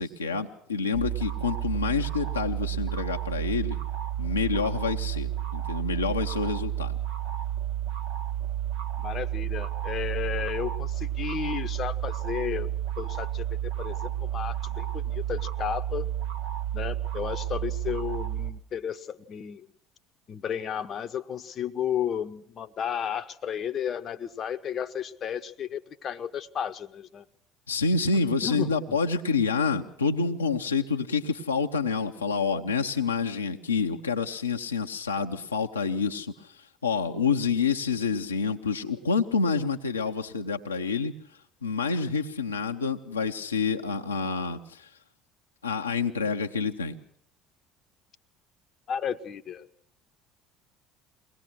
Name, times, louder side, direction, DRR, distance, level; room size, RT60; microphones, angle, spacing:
voice 1, 0.0-3.8 4.2-7.0 27.7-36.5 36.8-41.1 41.6-44.9 45.6-47.0, left 5 dB, 85° left, 3 dB, 0.8 m, -28 dB
sound 1, 0.9-18.5, right 11 dB, 70° right, 1.6 m, -31 dB
voice 2, 9.0-12.7 13.0-16.1 16.7-19.7 20.3-27.2 28.1-29.0 48.9-49.7, left 8 dB, 40° left, 11 dB, 0.9 m, -33 dB
22.5 x 18.5 x 6.3 m, 0.62 s
figure-of-eight pair, 60°, 0 cm